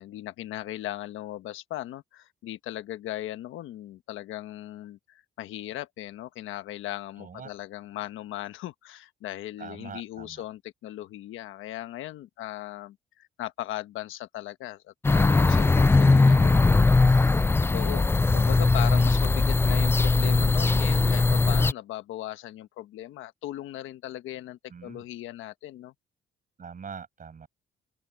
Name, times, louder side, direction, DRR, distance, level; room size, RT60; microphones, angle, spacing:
voice 1, 0.0-16.7 17.7-18.1 18.3-25.9, left 14 dB, 85° left, 1.3 m, -38 dB
voice 2, 7.2-7.5 9.6-10.5 16.0-17.4 17.9-18.3 18.9-19.4 24.7-25.0 26.6-27.5, right 6 dB, 45° right, 6.1 m, -45 dB
sound 1, 15.0-21.7, left 3 dB, 10° left, 0.3 m, -20 dB
open air
cardioid pair, 90°, 20 cm